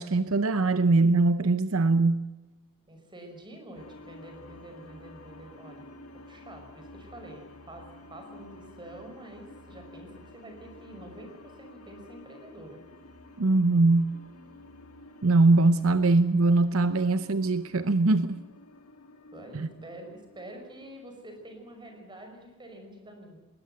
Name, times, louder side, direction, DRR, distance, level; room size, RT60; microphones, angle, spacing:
voice 1, 0.0-2.3 13.4-14.2 15.2-18.3 19.5-19.7, right 3 dB, 70° right, 0.8 m, -22 dB
voice 2, 2.9-5.9 6.3-12.8 17.0-17.1 19.3-23.4, right 1 dB, 20° right, 5.5 m, -47 dB
sound 1, 3.7-22.1, left 2 dB, 80° left, 2.8 m, -51 dB
20.0 x 19.5 x 7.8 m
head